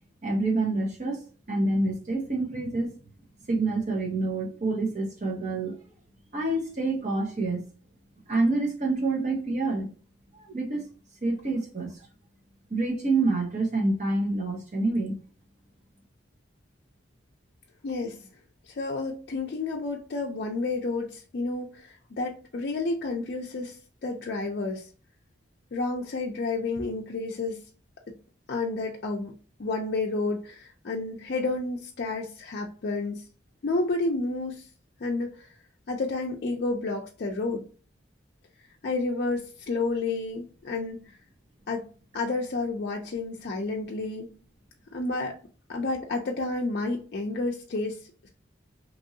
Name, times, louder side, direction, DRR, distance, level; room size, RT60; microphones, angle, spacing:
voice 1, 0.2-3.0 3.5-5.8 6.3-7.6 8.3-9.9 10.3-10.9 11.2-12.1 12.7-15.2, right 2 dB, 40° right, 0.8 m, -27 dB
voice 2, 17.8-18.3 18.7-24.9 25.7-27.6 28.1-28.2 28.5-29.3 29.6-33.2 33.6-34.7 35.0-35.5 35.9-37.7 38.8-41.0 41.7-41.8 42.1-44.3 44.9-45.4 45.7-48.3, left 3 dB, 55° left, 0.4 m, -30 dB
3.0 x 2.6 x 2.6 m
head